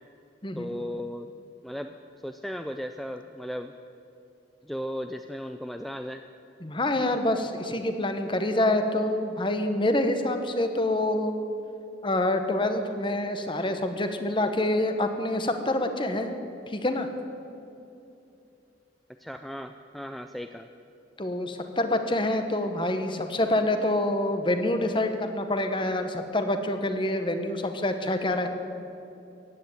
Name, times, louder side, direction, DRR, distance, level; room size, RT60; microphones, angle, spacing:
voice 1, 0.6-1.3 1.6-2.0 2.2-3.7 4.6-6.2 19.2-20.7, equal, ahead, 7 dB, 0.4 m, -36 dB
voice 2, 6.6-11.3 12.0-16.3 16.7-17.1 21.2-28.5, left 1 dB, 25° left, 7 dB, 1.1 m, -26 dB
15.5 x 9.5 x 9.4 m, 2.8 s
head